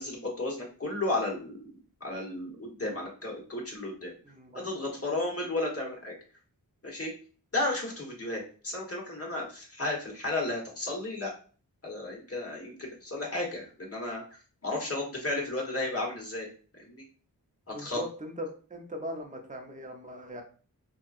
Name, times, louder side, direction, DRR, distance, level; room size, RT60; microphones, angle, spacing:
voice 1, 0.0-4.1 4.5-6.1 6.8-7.1 7.5-11.3 11.8-14.2 14.6-16.5 16.7-17.0 17.7-18.0, left 2 dB, 40° left, -2 dB, 1.3 m, -33 dB
voice 2, 4.2-4.9 17.7-20.4, equal, 20° right, 2 dB, 0.7 m, -40 dB
4.2 x 2.4 x 2.5 m, 0.40 s
wide cardioid pair, 90°, 35 cm